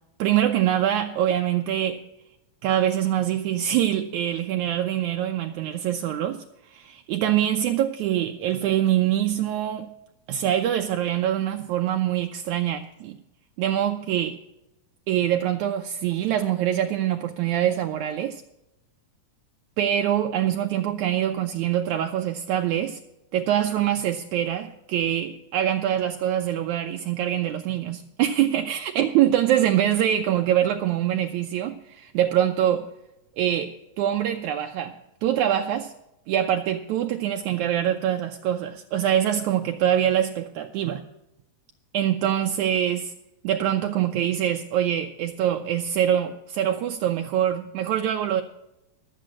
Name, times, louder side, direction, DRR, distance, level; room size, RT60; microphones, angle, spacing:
voice 1, 0.2-2.0 2.6-9.9 10.3-13.2 13.6-14.4 15.1-18.4 19.8-23.0 23.3-32.9 33.4-34.9 35.2-35.9 36.3-41.0 41.9-43.1 43.4-48.4, right 11 dB, 85° right, 1.6 m, -24 dB
12.0 x 8.9 x 6.3 m
omnidirectional pair, 4.1 m